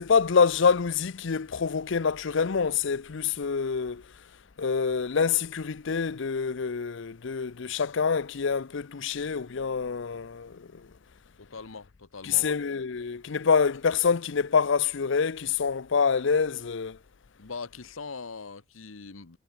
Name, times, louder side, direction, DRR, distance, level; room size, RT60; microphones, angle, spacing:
voice 1, 0.0-4.0 4.6-10.9 12.2-17.0, left 5 dB, 65° left, 0.6 m, -26 dB
voice 2, 11.4-12.6 17.4-19.4, left 4 dB, 90° left, 1.1 m, -41 dB
head